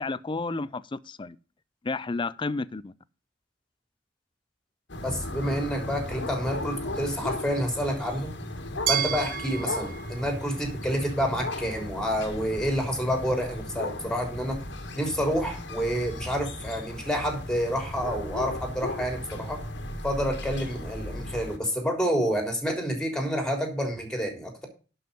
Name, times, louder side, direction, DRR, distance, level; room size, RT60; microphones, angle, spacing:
voice 1, 0.0-1.4 1.8-2.9, left 3 dB, 25° left, 0.5 m, -31 dB
sound 1, 4.9-21.6, left 1 dB, 70° left, 1.8 m, -36 dB
voice 2, 5.0-8.3 8.9-14.6 15.0-19.6 20.0-24.7, equal, 5° left, 3.4 m, -29 dB
Glass, 8.9-11.8, right 10 dB, 50° right, 0.5 m, -33 dB
11.5 x 5.6 x 5.3 m
head